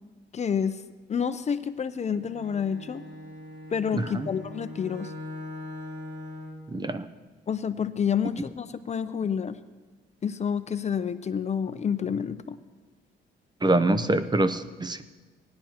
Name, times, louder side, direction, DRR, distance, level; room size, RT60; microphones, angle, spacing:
voice 1, 0.3-0.8 1.1-3.0 3.7-5.1 7.5-9.6 10.2-12.6, left 7 dB, 40° left, 12 dB, 0.5 m, -29 dB
Bowed string instrument, 1.9-6.7, left 1 dB, 80° right, 3.2 m, -41 dB
voice 2, 3.9-4.2 6.7-7.0 13.6-15.0, right 2 dB, 25° right, 12 dB, 0.6 m, -25 dB
19.0 x 10.5 x 2.9 m, 1.3 s
cardioid pair, 85°, 19 cm